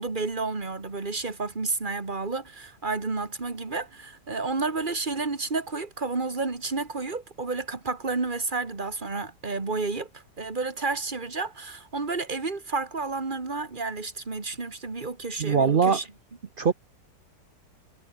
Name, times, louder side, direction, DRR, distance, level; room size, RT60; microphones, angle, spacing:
voice 1, 0.0-16.0, right 3 dB, 25° right, 2.4 m, -31 dB
voice 2, 15.4-16.0 16.6-16.7, right 5 dB, 55° right, 0.6 m, -21 dB
omnidirectional pair, 1.9 m